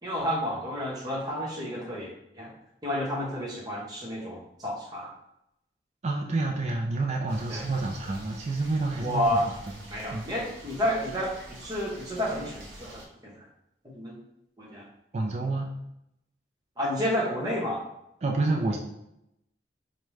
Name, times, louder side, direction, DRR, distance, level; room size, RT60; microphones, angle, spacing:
voice 1, 0.0-2.1 2.3-2.5 2.8-5.1 7.5-7.6 9.0-9.5 9.9-13.0 13.9-14.1 14.6-14.8 16.8-17.8, equal, 20° right, -4 dB, 0.9 m, -30 dB
voice 2, 6.0-9.4 10.1-10.2 15.1-15.7 18.2-18.8, right 3 dB, 35° right, 0 dB, 0.3 m, -28 dB
sound 1, 7.3-13.1, right 1 dB, 80° right, 1.1 m, -47 dB
4.8 x 2.2 x 3.1 m, 0.83 s
head